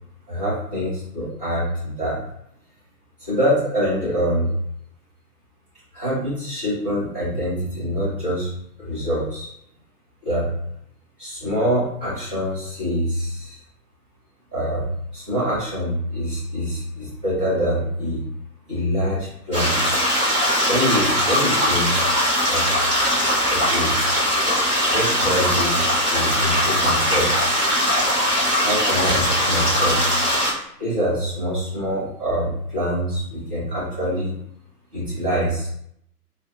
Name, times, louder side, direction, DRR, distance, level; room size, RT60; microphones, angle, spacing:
voice 1, 0.3-2.2 3.2-4.5 5.9-8.5 8.8-9.5 10.2-10.5 11.2-13.6 14.5-18.2 18.7-19.8 20.6-22.1 22.5-22.7 23.5-24.0 24.9-25.8 26.1-27.3 28.6-30.0 30.8-34.3 34.9-35.7, equal, 5° right, -17 dB, 0.4 m, -25 dB
sound 1, 19.5-30.5, equal, 10° left, 0.9 m, -20 dB
2.4 x 2.4 x 2.5 m, 0.72 s
figure-of-eight pair, 120°, 47 cm